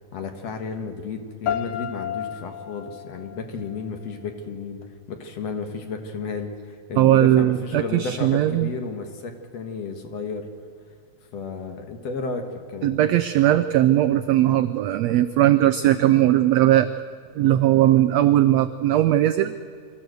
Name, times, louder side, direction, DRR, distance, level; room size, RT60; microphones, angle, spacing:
voice 1, 0.1-10.5 11.3-13.1, left 4 dB, 55° left, 5 dB, 2.4 m, -33 dB
sound 1, 1.5-4.4, left 9 dB, 85° left, 1.4 m, -33 dB
voice 2, 7.0-8.7 12.8-16.9 17.3-19.5, right 13 dB, 90° right, 11 dB, 1.5 m, -19 dB
24.0 x 14.0 x 7.8 m, 2.2 s
omnidirectional pair, 3.8 m